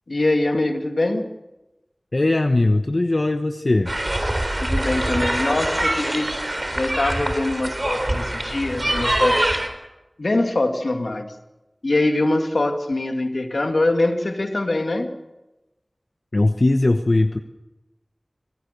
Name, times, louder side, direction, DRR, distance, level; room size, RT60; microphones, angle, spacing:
voice 1, 0.1-1.3 4.6-9.6 10.2-11.3 11.8-15.1, left 2 dB, 80° left, 5 dB, 2.4 m, -23 dB
voice 2, 2.1-3.9 16.3-17.4, left 2 dB, 55° left, 6 dB, 1.1 m, -19 dB
sound 1, 3.9-9.7, right 1 dB, 35° right, 3.9 m, -24 dB
26.5 x 17.5 x 6.8 m, 1.0 s
wide cardioid pair, 55°, 0 cm